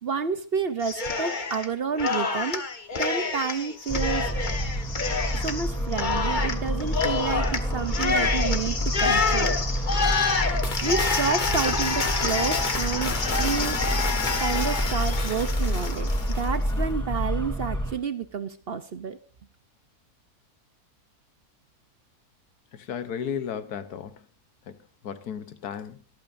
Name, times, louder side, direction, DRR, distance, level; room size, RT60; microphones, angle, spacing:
voice 1, 0.0-2.6 3.0-4.3 5.3-10.1 10.8-13.8 14.4-16.1 16.4-19.2, right 6 dB, 50° right, 0.8 m, -30 dB
Cheering, 0.8-1.7 2.0-16.5, left 4 dB, 35° left, 1.1 m, -27 dB
sound 1, 3.9-17.9, equal, 5° left, 3.1 m, -29 dB
voice 2, 22.7-24.2 24.7-24.8 25.0-26.0, left 7 dB, 85° left, 1.5 m, -34 dB
23.5 x 8.7 x 2.6 m
omnidirectional pair, 1.6 m